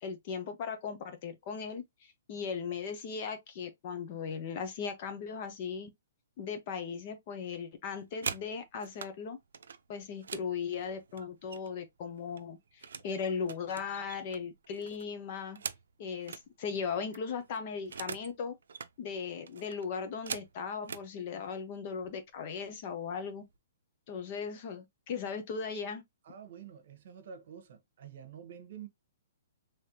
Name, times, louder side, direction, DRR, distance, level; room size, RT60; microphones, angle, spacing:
voice 1, 0.0-5.9 6.4-9.4 9.9-15.6 16.0-18.5 19.0-23.4 24.1-26.0, left 6 dB, 40° left, 0.8 m, -38 dB
sound 1, 7.9-9.1 9.5-11.9 12.2-13.1 13.4-16.5 16.8-16.9 17.1-18.3 18.6-18.9 19.5-21.1 21.9-22.1 22.4-22.8 23.1-23.6, right 6 dB, 85° right, 0.5 m, -43 dB
voice 2, 26.2-28.9, right 8 dB, 55° right, 1.0 m, -48 dB
3.4 x 3.1 x 2.7 m
hypercardioid pair, 160°, 0 cm